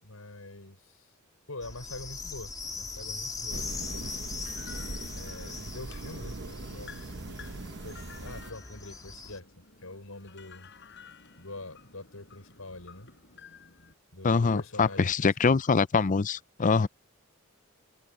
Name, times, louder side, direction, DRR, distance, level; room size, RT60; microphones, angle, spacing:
voice 1, 0.0-1.1 1.5-3.7 5.1-9.5 9.8-10.7 11.4-13.1 14.1-15.6, left 2 dB, 90° left, 6.4 m, -45 dB
sound 1, 1.6-9.4, left 4 dB, 20° left, 3.0 m, -41 dB
sound 2, 3.5-8.5, right 2 dB, 55° right, 0.9 m, -41 dB
sound 3, 4.0-13.9, left 6 dB, 60° left, 6.5 m, -53 dB
voice 2, 14.2-16.9, left 4 dB, 40° left, 0.5 m, -24 dB
head